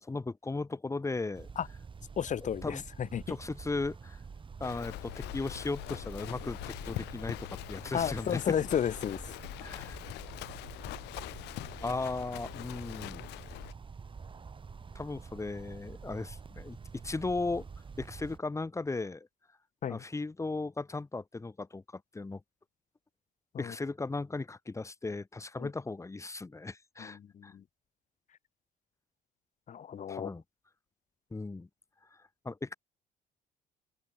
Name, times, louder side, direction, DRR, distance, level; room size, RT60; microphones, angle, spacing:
voice 1, 0.0-1.5 2.6-2.8 3.3-4.2 4.6-8.4 9.6-10.0 11.8-13.3 15.0-17.7 18.0-19.3 19.9-22.4 23.6-27.5 30.1-30.4 31.3-31.7 32.4-32.7, left 3 dB, 15° left, 3.7 m, -36 dB
sound 1, 1.3-18.4, right 5 dB, 30° right, 7.1 m, -47 dB
voice 2, 2.2-3.4 7.9-9.2 19.8-20.0 23.5-23.7 25.6-25.7 27.0-27.6 29.7-30.3, left 8 dB, 45° left, 3.5 m, -33 dB
Livestock farm animals working animals, 4.6-13.7, left 20 dB, 90° left, 4.4 m, -43 dB
open air
cardioid pair, 110°, 17 cm